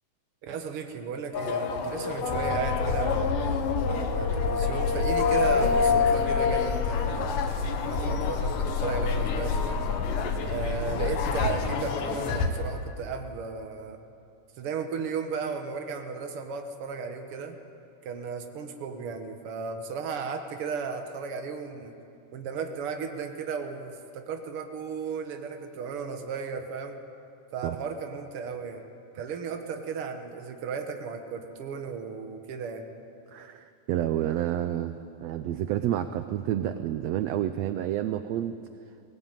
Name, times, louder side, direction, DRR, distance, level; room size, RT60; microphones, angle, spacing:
voice 1, 0.4-3.4 3.9-7.4 7.8-9.9 10.4-14.0 14.6-17.6 18.0-21.9 22.3-27.0 27.5-28.8 29.2-32.9, right 5 dB, 50° right, 5 dB, 2.0 m, -35 dB
sound 1, 1.3-12.5, left 5 dB, 90° left, 2.9 m, -28 dB
sound 2, 2.3-11.6, left 4 dB, 65° left, 2.7 m, -30 dB
voice 2, 33.3-38.6, right 11 dB, 80° right, 10 dB, 1.5 m, -29 dB
19.0 x 18.0 x 9.0 m, 2.6 s
omnidirectional pair, 3.6 m